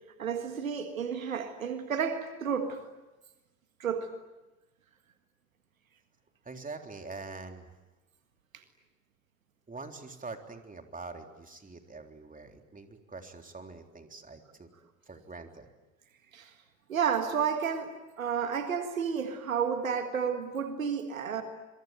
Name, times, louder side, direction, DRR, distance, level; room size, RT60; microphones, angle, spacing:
voice 1, 0.2-2.8 3.8-4.1 16.3-16.5 16.9-21.4, right 7 dB, 85° right, 1.8 m, -31 dB
voice 2, 6.4-7.7 9.7-14.7 15.1-15.7, right 3 dB, 20° right, 3.7 m, -44 dB
27.0 x 23.5 x 9.1 m
figure-of-eight pair, 60°, 40 cm